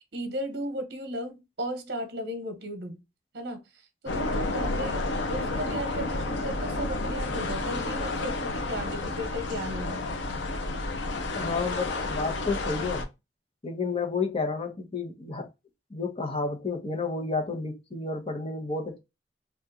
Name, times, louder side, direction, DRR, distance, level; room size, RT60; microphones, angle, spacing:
voice 1, 0.1-3.0 3.3-3.6 4.0-10.0, equal, 60° right, 1.0 m, -35 dB
sound 1, 4.1-13.0, left 2 dB, 90° left, 0.7 m, -31 dB
voice 2, 11.3-13.1 13.6-15.5 15.9-19.0, left 4 dB, 30° left, 0.9 m, -31 dB
3.6 x 2.4 x 2.7 m
head